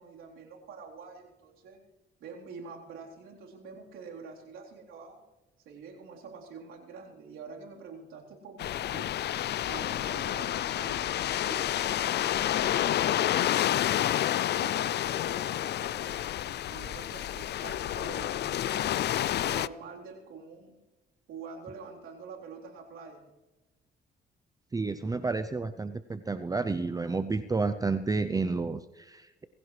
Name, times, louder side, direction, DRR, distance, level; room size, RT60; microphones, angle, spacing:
voice 1, 0.0-1.8 2.2-5.2 5.7-9.2 9.7-11.1 11.4-13.9 14.5-16.2 16.7-18.9 19.4-20.7 21.3-23.3, right 5 dB, 85° right, -2 dB, 3.9 m, -46 dB
sound 1, 8.6-19.7, left 12 dB, 60° left, 0.4 m, -29 dB
voice 2, 24.7-29.5, right 3 dB, 20° right, 11 dB, 0.6 m, -30 dB
20.0 x 16.0 x 3.3 m, 1.1 s
cardioid pair, 90°, 20 cm